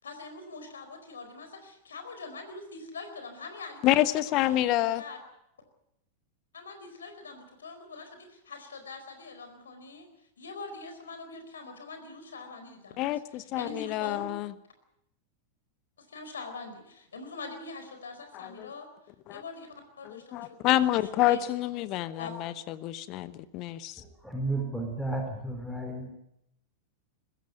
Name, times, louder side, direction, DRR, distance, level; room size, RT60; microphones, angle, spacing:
voice 1, 0.0-5.2 6.5-10.1 10.4-14.3 16.0-18.9 19.3-19.7 20.0-20.5 20.9-21.0 21.3-21.4 22.2-22.3, left 3 dB, 70° left, 7 dB, 4.4 m, -43 dB
voice 2, 3.8-5.0 13.0-14.5 18.3-18.7 19.3-19.4 20.0-24.0, left 14 dB, 40° left, 16 dB, 1.0 m, -28 dB
voice 3, 24.2-26.1, right 2 dB, ahead, 3 dB, 3.9 m, -32 dB
21.0 x 15.5 x 9.5 m, 0.80 s
figure-of-eight pair, 90°, 0 cm